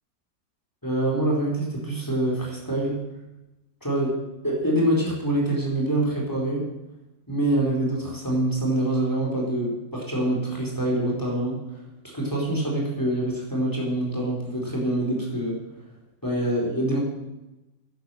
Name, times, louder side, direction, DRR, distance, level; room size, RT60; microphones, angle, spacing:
voice 1, 0.8-3.0 3.8-6.7 7.3-11.8 12.1-15.6 16.2-17.0, right 1 dB, 10° left, -3 dB, 4.0 m, -25 dB
11.0 x 10.5 x 7.7 m, 1.0 s
omnidirectional pair, 2.0 m